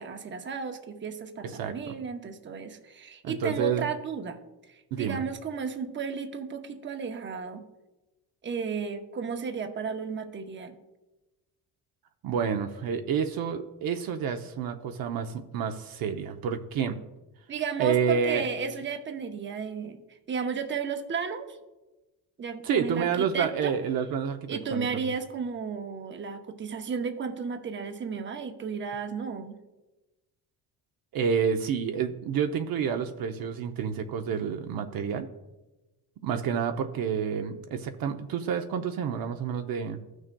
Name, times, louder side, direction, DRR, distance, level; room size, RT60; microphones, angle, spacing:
voice 1, 0.0-4.4 4.7-7.7 8.4-10.8 17.5-20.0 20.3-21.6 22.4-23.7 24.5-29.6, right 6 dB, 30° right, 7 dB, 0.8 m, -33 dB
voice 2, 1.6-1.9 3.2-3.9 4.9-5.2 12.2-17.0 17.8-18.5 22.6-24.9 31.1-35.3 36.2-40.0, right 7 dB, 65° right, 6 dB, 0.7 m, -29 dB
15.0 x 6.2 x 2.2 m, 1.1 s
cardioid pair, 130°, 38 cm